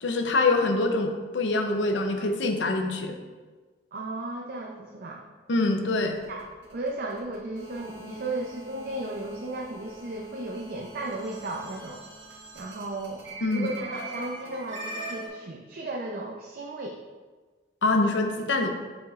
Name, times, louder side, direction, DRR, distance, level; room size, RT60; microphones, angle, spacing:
voice 1, 0.0-3.2 5.5-6.2 13.4-13.7 17.8-18.7, left 2 dB, 90° left, 4 dB, 0.7 m, -25 dB
voice 2, 3.9-5.2 6.3-6.4 6.7-12.0 12.5-13.2 13.5-17.0, right 2 dB, 55° right, -1 dB, 0.5 m, -35 dB
sound 1, 5.7-15.3, right 1 dB, 90° right, 1.9 m, -42 dB
8.3 x 5.1 x 2.4 m, 1.4 s
head